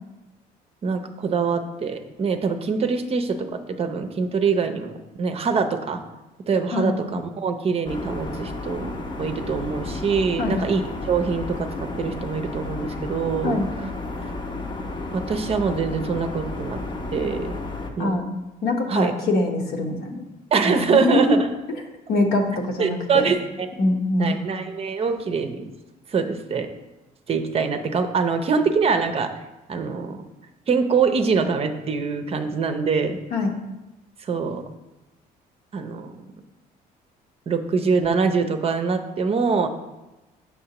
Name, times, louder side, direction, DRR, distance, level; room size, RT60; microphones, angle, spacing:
voice 1, 0.8-6.0 6.5-11.7 12.0-13.6 15.1-16.8 17.1-17.5 18.0-18.2 18.9-19.1 20.5-21.5 22.8-23.7 24.2-25.7 26.1-26.7 27.3-29.3 29.7-30.2 30.7-33.2 34.2-34.6 35.7-36.2 37.5-39.7, right 5 dB, 35° right, 7 dB, 0.6 m, -24 dB
sound 1, 7.9-17.9, left 2 dB, 25° left, 0.7 m, -32 dB
voice 2, 18.6-20.2 20.6-21.3 22.1-23.3 23.8-24.4 33.3-33.5, left 2 dB, 65° left, 2 dB, 1.0 m, -23 dB
7.0 x 5.6 x 2.9 m, 1.0 s
cardioid pair, 110°, 17 cm